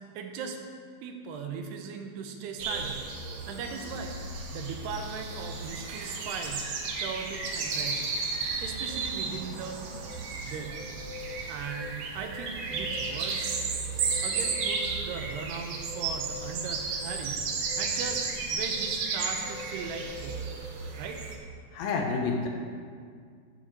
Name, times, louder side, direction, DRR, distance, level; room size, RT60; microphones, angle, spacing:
voice 1, 0.1-0.6 1.0-3.0 3.5-4.2 4.5-6.6 7.0-8.1 8.6-9.8 10.4-10.8 11.5-13.5 14.2-17.5 17.8-20.4 21.0-21.2, right 6 dB, 85° right, 4 dB, 3.0 m, -38 dB
sound 1, 2.6-21.3, right 4 dB, 70° right, 1.8 m, -33 dB
voice 2, 21.7-22.5, left 4 dB, 75° left, 2 dB, 2.5 m, -29 dB
7.7 x 7.1 x 7.2 m, 2.1 s
omnidirectional pair, 4.6 m